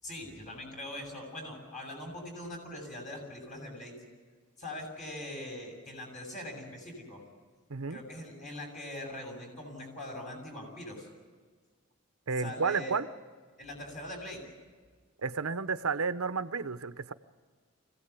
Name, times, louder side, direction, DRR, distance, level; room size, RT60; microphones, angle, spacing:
voice 1, 0.0-3.9 4.6-7.2 7.9-11.1 12.4-13.0 13.6-14.4, left 1 dB, 35° left, 2 dB, 7.6 m, -42 dB
voice 2, 12.3-13.1 15.2-17.1, right 5 dB, 85° right, 11 dB, 0.9 m, -32 dB
25.0 x 17.0 x 8.4 m, 1.5 s
head